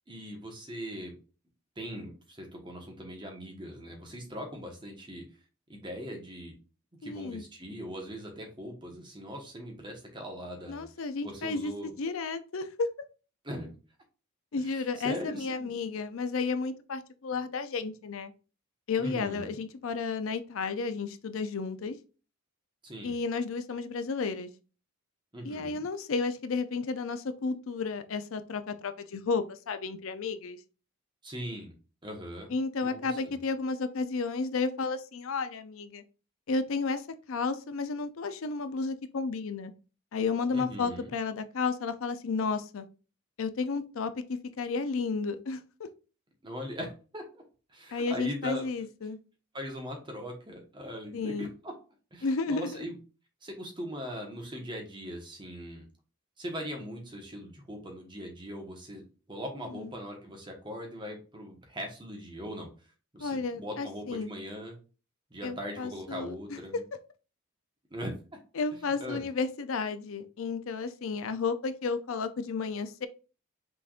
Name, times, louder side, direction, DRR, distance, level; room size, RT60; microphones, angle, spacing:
voice 1, 0.1-1.2 1.8-5.3 5.7-6.5 7.0-10.9 11.2-11.9 13.4-13.7 14.6-15.7 19.0-19.6 22.8-23.2 25.3-25.8 31.2-31.7 32.0-32.5 32.8-33.4 40.5-41.1 46.4-47.4 47.7-48.6 49.5-51.7 52.1-53.0 53.4-55.9 56.4-62.7 63.1-64.8 65.3-66.8 67.9-68.4 69.0-69.2, equal, 20° right, 2 dB, 1.2 m, -40 dB
voice 2, 7.0-7.4 10.7-12.9 14.5-18.3 18.9-22.0 23.0-24.5 25.4-30.6 32.5-36.0 36.5-39.7 40.1-42.9 43.4-45.9 47.9-49.2 51.1-51.5 52.2-52.8 59.7-59.9 63.2-64.3 65.4-66.6 68.6-73.1, left 4 dB, 70° left, 10 dB, 0.5 m, -32 dB
6.0 x 3.5 x 2.4 m, 0.34 s
head